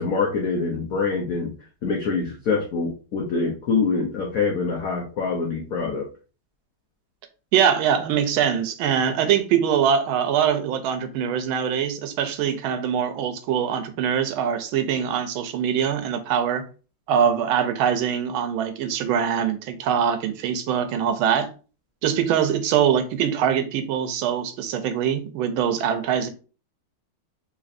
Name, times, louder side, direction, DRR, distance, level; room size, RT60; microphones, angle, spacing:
voice 1, 0.0-1.5 1.8-6.1, left 4 dB, 80° left, 0.7 m, -25 dB
voice 2, 7.5-16.6 17.1-21.5 22.0-26.3, right 8 dB, 80° right, 1.4 m, -23 dB
4.1 x 3.1 x 2.5 m
omnidirectional pair, 2.3 m